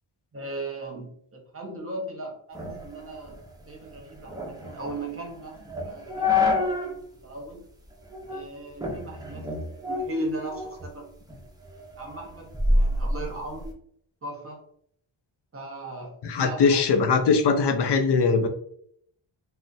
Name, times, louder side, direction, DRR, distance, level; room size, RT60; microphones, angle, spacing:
voice 1, 0.3-7.0 7.2-7.6 8.3-9.5 9.8-11.1 12.0-13.8 14.2-14.6 15.5-16.8, right 1 dB, 30° right, 1 dB, 0.8 m, -37 dB
sound 1, 2.5-7.0 7.4-7.5 8.1-8.5 8.8-10.9 11.3-13.7, left 2 dB, 10° right, 0.5 m, -28 dB
voice 2, 16.2-18.5, left 5 dB, 55° left, 6 dB, 0.6 m, -21 dB
2.4 x 2.1 x 3.9 m, 0.66 s
wide cardioid pair, 115°, 48 cm